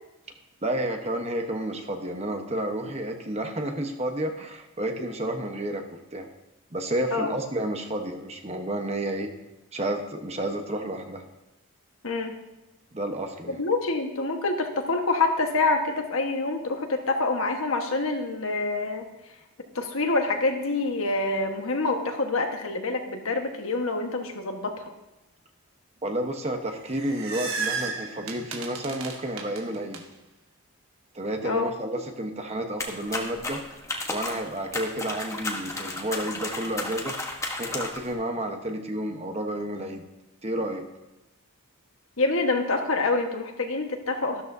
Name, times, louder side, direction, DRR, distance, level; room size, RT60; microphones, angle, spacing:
voice 1, 0.6-5.8 6.1-6.3 6.7-9.3 9.7-11.2 12.9-13.6 26.0-30.0 31.1-33.6 34.1-37.2 37.6-40.0 40.4-40.8, right 1 dB, 30° right, 4 dB, 1.0 m, -31 dB
voice 2, 13.5-19.1 19.7-24.8 31.4-31.7 42.2-44.4, left 3 dB, 65° left, 4 dB, 1.4 m, -26 dB
sound 1, 26.7-30.0, right 4 dB, 60° right, 1.3 m, -33 dB
sound 2, 32.8-38.1, left 2 dB, 15° left, 1.1 m, -33 dB
13.5 x 12.5 x 2.7 m, 1.0 s
head